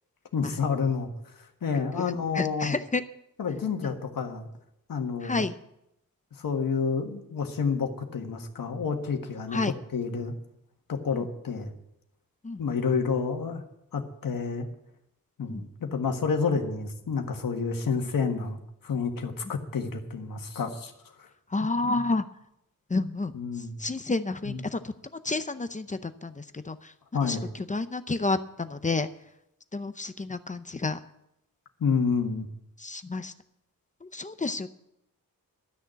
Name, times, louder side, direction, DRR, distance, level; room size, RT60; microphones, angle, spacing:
voice 1, 0.3-1.1 1.6-2.7 3.4-4.5 4.9-5.4 6.4-9.6 9.9-10.3 10.9-11.7 12.6-13.6 13.9-14.6 15.4-20.9 23.3-23.8 24.4-24.6 27.1-27.5 31.8-32.5, left 5 dB, 70° left, 4 dB, 1.6 m, -29 dB
voice 2, 2.0-3.0 3.8-3.9 5.2-5.5 9.5-9.7 11.1-11.3 12.4-12.6 15.5-15.6 21.5-22.3 22.9-24.9 25.2-26.9 27.2-29.1 29.7-31.0 32.8-33.3 34.0-34.7, left 3 dB, 20° left, 10 dB, 0.6 m, -30 dB
12.5 x 6.6 x 9.0 m, 0.81 s
wide cardioid pair, 165°, 34 cm